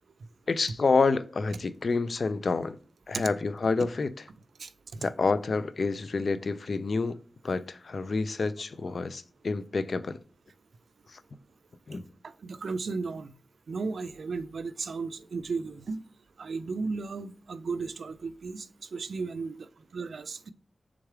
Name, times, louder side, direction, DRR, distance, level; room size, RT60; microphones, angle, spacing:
voice 1, 0.5-2.8 3.1-4.2 5.0-10.2 11.1-11.2 11.9-12.0, left 4 dB, 60° left, 0.3 m, -28 dB
voice 2, 12.4-13.3 13.7-16.0 16.4-18.7 18.9-19.7 19.9-20.5, right 4 dB, 85° right, 0.3 m, -34 dB
3.6 x 3.2 x 4.7 m
wide cardioid pair, 110°, 0 cm